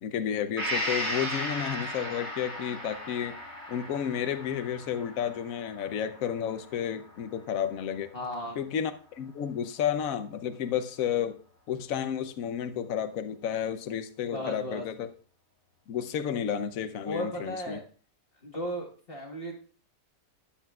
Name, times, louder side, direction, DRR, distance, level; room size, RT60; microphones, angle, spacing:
voice 1, 0.0-3.4 3.7-8.1 8.6-11.4 11.7-15.1 15.9-17.8, left 8 dB, 60° left, 10 dB, 1.1 m, -31 dB
Gong, 0.6-8.2 8.6-8.7, equal, 40° right, 4.6 m, -36 dB
voice 2, 8.1-8.6 14.3-14.8 17.0-17.8 18.4-19.5, equal, 35° left, 0 dB, 1.6 m, -35 dB
13.0 x 10.0 x 2.4 m, 0.41 s
omnidirectional pair, 1.7 m